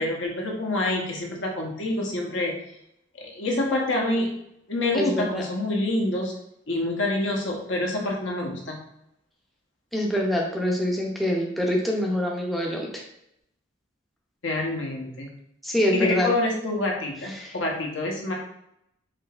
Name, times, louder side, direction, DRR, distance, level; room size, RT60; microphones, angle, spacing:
voice 1, 0.0-2.6 3.2-4.3 4.7-6.3 6.7-8.8 14.4-15.3 15.9-18.3, left 2 dB, 70° left, 0 dB, 0.9 m, -27 dB
voice 2, 4.9-5.4 9.9-13.0 15.6-16.3 17.4-17.5, left 1 dB, ahead, -2 dB, 0.5 m, -25 dB
5.0 x 2.8 x 2.4 m, 0.77 s
head